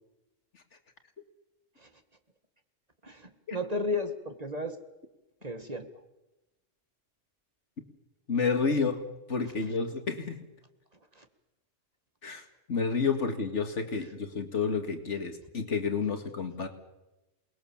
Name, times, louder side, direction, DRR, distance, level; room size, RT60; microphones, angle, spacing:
voice 1, 3.0-4.8 5.4-5.9 11.2-11.3, left 2 dB, 35° right, 8 dB, 1.9 m, -34 dB
voice 2, 8.3-9.0 9.3-10.4 12.2-16.7, left 5 dB, 80° left, 7 dB, 2.4 m, -30 dB
28.0 x 20.5 x 7.3 m, 1.0 s
omnidirectional pair, 1.2 m